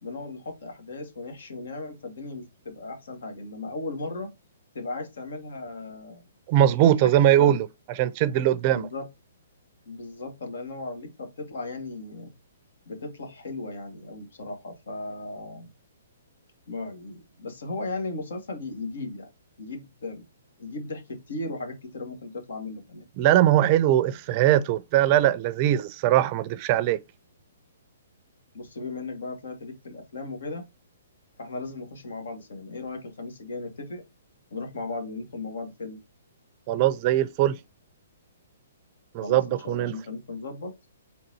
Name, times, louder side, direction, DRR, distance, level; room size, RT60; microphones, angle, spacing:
voice 1, 0.0-4.3 4.7-6.2 6.5-7.1 7.4-7.6 8.7-9.1 9.9-12.3 12.9-15.7 16.7-19.3 19.6-20.2 20.6-23.1 28.5-30.6 31.4-34.0 34.5-36.0 39.2-40.8, left 3 dB, 75° left, 1.9 m, -36 dB
voice 2, 6.5-7.7 8.0-8.9 23.2-27.0 36.7-37.6 39.1-39.9, right 12 dB, 35° right, 0.4 m, -21 dB
4.2 x 3.9 x 2.8 m
hypercardioid pair, 140°, 0 cm